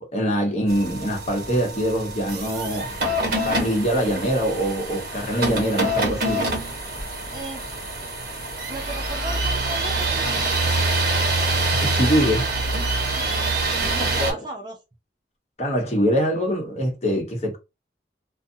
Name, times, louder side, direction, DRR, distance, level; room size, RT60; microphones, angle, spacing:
voice 1, 0.1-2.9 3.4-6.4 11.8-12.5 14.2-14.4 15.6-17.6, equal, 40° left, 1.0 m, -23 dB
sound 1, 0.7-14.3, right 2 dB, 55° right, 1.1 m, -25 dB
voice 2, 7.3-7.7 8.7-10.5 13.1-13.3 13.9-14.8, right 2 dB, 25° right, 0.6 m, -36 dB
2.5 x 2.3 x 2.7 m
head